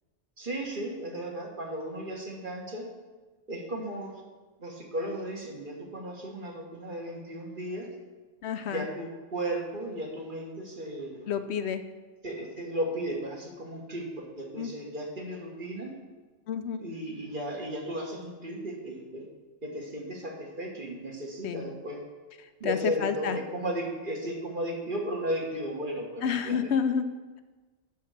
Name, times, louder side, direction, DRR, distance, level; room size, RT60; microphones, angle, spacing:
voice 1, 0.4-2.9 3.5-4.1 4.6-7.9 8.6-11.3 12.2-15.9 16.8-19.3 19.6-22.0 22.6-26.7, right 1 dB, 50° right, 0 dB, 1.6 m, -35 dB
voice 2, 8.4-8.9 11.3-11.8 14.6-14.7 16.5-16.8 21.4-21.7 22.6-23.4 26.2-27.0, left 7 dB, 75° left, 9 dB, 0.9 m, -29 dB
10.5 x 4.4 x 6.5 m, 1.3 s
omnidirectional pair, 1.1 m